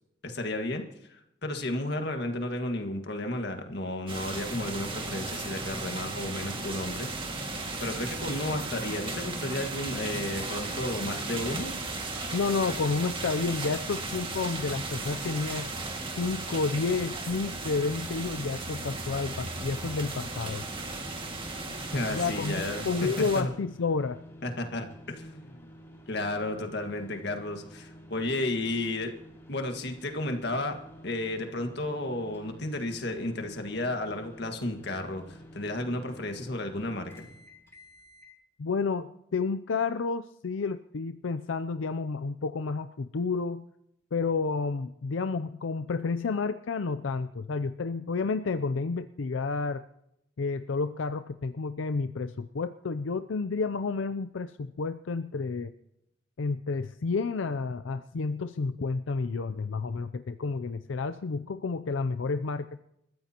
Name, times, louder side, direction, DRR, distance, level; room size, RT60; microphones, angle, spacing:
voice 1, 0.2-0.8 1.1-7.1 7.8-11.7 21.9-23.1 23.3-23.5 24.4-25.6 26.1-29.1 29.5-30.8 31.0-37.3, left 1 dB, 60° left, 5 dB, 1.8 m, -33 dB
sound 1, 4.1-23.4, right 3 dB, 30° right, 2.0 m, -36 dB
voice 2, 12.3-15.7 16.2-20.6 22.1-24.2 38.6-43.7 44.1-49.8 50.4-55.7 56.4-62.8, left 4 dB, 90° left, 11 dB, 0.5 m, -30 dB
sound 2, 21.0-38.3, equal, 15° left, 3.1 m, -50 dB
29.0 x 14.5 x 2.9 m, 0.81 s
head